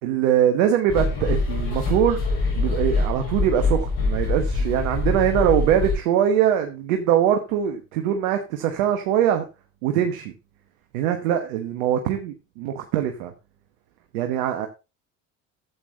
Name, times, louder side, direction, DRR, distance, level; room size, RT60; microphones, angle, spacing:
voice 1, 0.0-2.2 2.6-9.4 9.8-10.3 10.9-13.3 14.1-14.7, right 9 dB, 80° right, 5 dB, 1.3 m, -22 dB
sound 1, 0.9-5.9, left 3 dB, 65° left, 5.8 m, -24 dB
12.5 x 8.1 x 2.9 m, 0.27 s
hypercardioid pair, 70°, 39 cm